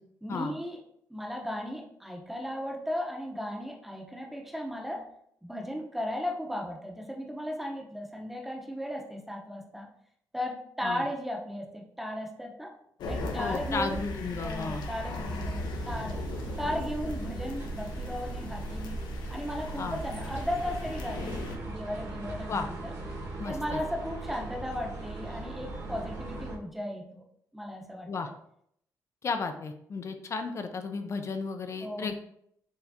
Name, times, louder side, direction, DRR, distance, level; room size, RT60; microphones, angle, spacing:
voice 1, 0.2-0.8 1.1-5.1 5.4-9.9 10.3-12.7 13.1-14.0 14.4-16.2 16.6-19.0 19.3-22.9 23.5-27.2 27.5-28.1 31.8-32.1, left 1 dB, 5° right, 0 dB, 0.8 m, -36 dB
sound 1, 13.0-21.6, left 1 dB, 80° left, 0.7 m, -37 dB
voice 2, 13.3-14.8 19.8-20.0 22.5-22.7 23.4-23.8 28.1-28.3 29.2-32.1, left 4 dB, 40° left, 7 dB, 0.4 m, -34 dB
sound 2, 15.8-26.6, right 2 dB, 50° right, 1.5 m, -39 dB
4.6 x 3.3 x 2.7 m, 0.70 s
cardioid pair, 100°, 7 cm